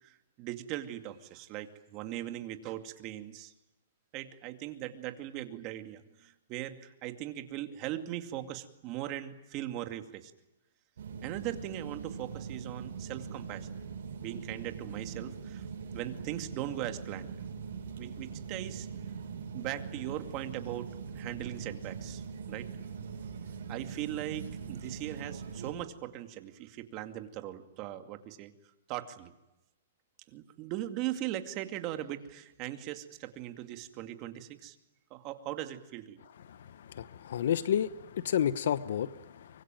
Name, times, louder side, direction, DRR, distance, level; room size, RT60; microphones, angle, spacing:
voice 1, 0.0-3.5 4.1-10.3 11.2-13.8 14.2-15.6 15.9-17.3 18.0-18.9 19.5-22.7 23.7-28.5 28.9-29.3 30.3-34.8 35.1-36.2, right 13 dB, 30° right, 8 dB, 2.4 m, -39 dB
sound 1, 11.0-25.7, right 6 dB, 70° right, 7.3 m, -42 dB
voice 2, 36.9-39.5, left 9 dB, 65° left, 15 dB, 1.1 m, -30 dB
25.0 x 23.0 x 9.2 m, 0.90 s
hypercardioid pair, 150°, 0 cm